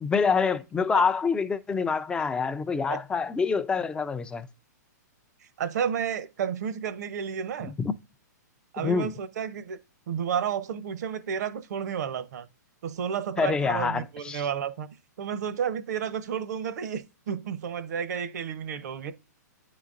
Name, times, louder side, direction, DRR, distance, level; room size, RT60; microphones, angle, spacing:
voice 1, 0.0-4.5 7.6-7.9 8.8-9.1 13.4-14.5, left 5 dB, 10° left, 0.4 m, -26 dB
voice 2, 5.6-7.8 8.7-9.8 10.1-12.5 12.8-14.9 15.2-19.1, right 8 dB, 65° right, 0.8 m, -31 dB
9.4 x 4.0 x 2.5 m
hypercardioid pair, 135°, 10 cm